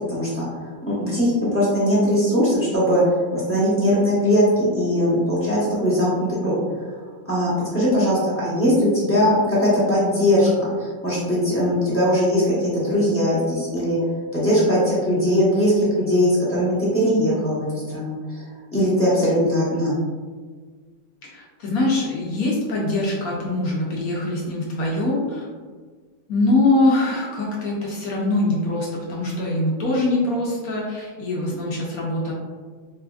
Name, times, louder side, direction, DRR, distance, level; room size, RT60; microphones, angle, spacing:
voice 1, 0.1-0.4 0.9-3.0 3.3-6.5 7.3-14.0 14.3-18.4 18.7-20.0, equal, 15° left, -10 dB, 0.6 m, -20 dB
voice 2, 21.2-25.4 26.3-32.3, left 2 dB, 70° left, -3 dB, 0.9 m, -23 dB
4.1 x 2.4 x 2.3 m, 1.5 s
omnidirectional pair, 2.0 m